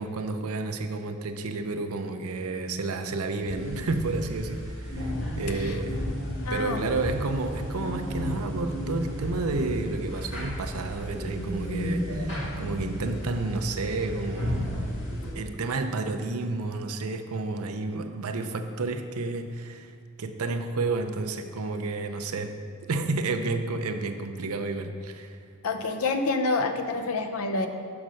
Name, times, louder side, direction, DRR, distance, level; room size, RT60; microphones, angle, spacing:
voice 1, 0.0-6.0 6.5-14.8 15.4-19.9 20.2-22.5 22.9-25.4, right 3 dB, 80° right, 7 dB, 0.6 m, -31 dB
sound 1, 3.4-15.3, equal, 60° left, 2.1 m, -33 dB
voice 2, 5.5-5.8 6.4-6.9 25.6-27.7, left 3 dB, 80° left, 7 dB, 0.6 m, -28 dB
5.9 x 5.2 x 6.2 m, 2.2 s
head